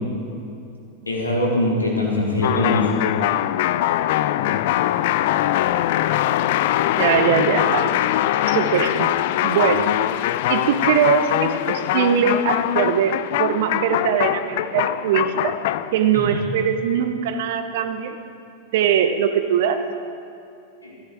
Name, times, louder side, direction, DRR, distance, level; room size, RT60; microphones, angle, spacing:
voice 1, 1.1-2.9 4.4-4.5 16.1-16.4 20.8-20.9, left 1 dB, 80° left, -3 dB, 3.0 m, -22 dB
sound 1, 2.4-16.0, left 13 dB, 50° left, 0.4 m, -22 dB
voice 2, 7.0-7.9 8.5-9.1 9.4-9.9 10.5-15.6 15.9-18.2 18.7-19.8, right 8 dB, 55° right, 8 dB, 1.0 m, -21 dB
14.0 x 13.5 x 4.8 m, 2.6 s
figure-of-eight pair, 90°, 0 cm